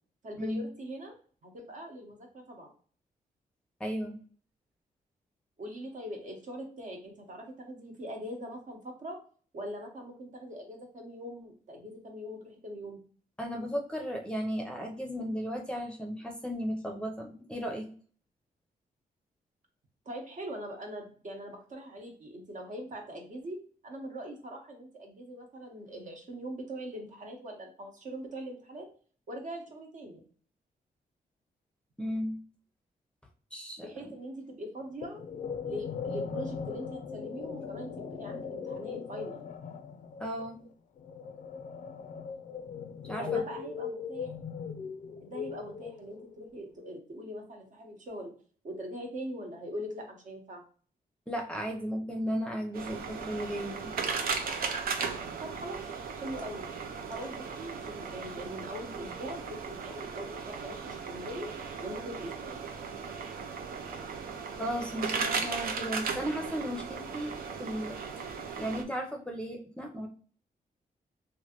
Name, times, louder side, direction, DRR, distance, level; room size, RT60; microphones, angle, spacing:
voice 1, 0.2-1.1 1.4-2.7 5.6-9.2 9.5-13.0 20.0-28.9 29.3-30.2 33.8-35.2 35.6-39.5 43.2-44.3 45.2-48.3 48.6-50.6 55.4-55.8 56.1-56.6 57.1-61.5 61.8-62.6, equal, 55° right, 1 dB, 1.0 m, -42 dB
voice 2, 3.8-4.2 13.4-17.9 32.0-32.4 33.5-34.1 40.2-40.6 43.0-43.4 51.3-53.9 64.6-67.3 67.6-68.0 68.6-70.1, equal, 5° left, 1 dB, 0.6 m, -35 dB
sound 1, 35.0-46.3, left 6 dB, 60° left, 0.4 m, -39 dB
sound 2, 52.7-68.8, right 5 dB, 75° right, 0.6 m, -37 dB
3.0 x 2.5 x 2.9 m, 0.44 s
cardioid pair, 105°, 15 cm